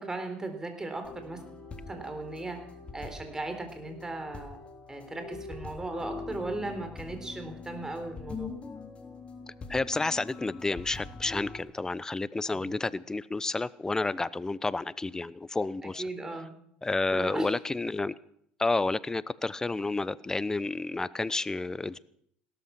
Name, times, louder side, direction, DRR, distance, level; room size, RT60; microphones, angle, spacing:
voice 1, 0.0-1.4 1.9-2.6 2.9-4.6 4.9-8.5 12.5-12.7 16.0-16.5 17.1-17.5, right 2 dB, 15° right, 6 dB, 4.0 m, -37 dB
sound 1, 1.0-11.6, left 4 dB, 30° left, 3.3 m, -43 dB
voice 2, 9.7-16.0 16.8-18.1 18.6-22.0, left 3 dB, 15° left, 18 dB, 0.8 m, -30 dB
17.5 x 13.0 x 6.1 m, 0.69 s
supercardioid pair, 85°, 4 cm